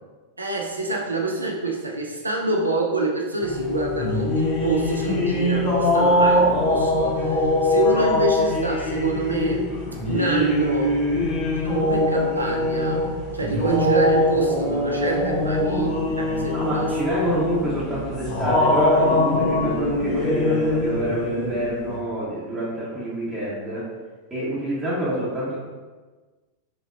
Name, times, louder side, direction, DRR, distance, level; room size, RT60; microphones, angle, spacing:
voice 1, 0.4-9.6 10.1-11.0 11.6-13.1 13.3-16.9, right 2 dB, 80° right, 0 dB, 0.5 m, -26 dB
sound 1, 3.4-22.0, left 1 dB, 40° left, 1.0 m, -22 dB
voice 2, 16.5-23.8 24.3-25.6, right 1 dB, 15° right, -9 dB, 1.3 m, -27 dB
5.4 x 2.7 x 2.6 m, 1.3 s
figure-of-eight pair, 90°, 0 cm